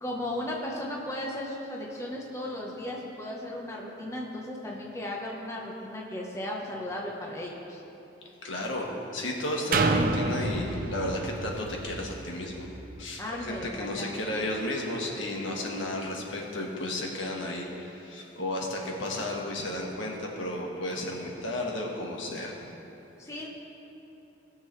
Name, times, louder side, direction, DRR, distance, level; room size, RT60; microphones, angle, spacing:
voice 1, 0.0-7.8 13.2-14.1 14.4-14.5 23.2-23.5, left 1 dB, 15° left, -3 dB, 1.1 m, -36 dB
voice 2, 8.4-8.9 9.1-12.7 13.0-22.6, left 1 dB, 85° left, -1 dB, 1.5 m, -33 dB
sound 1, 9.7-13.5 14.0-14.1, right 2 dB, 45° right, 0.6 m, -29 dB
19.5 x 6.8 x 3.3 m, 3.0 s
head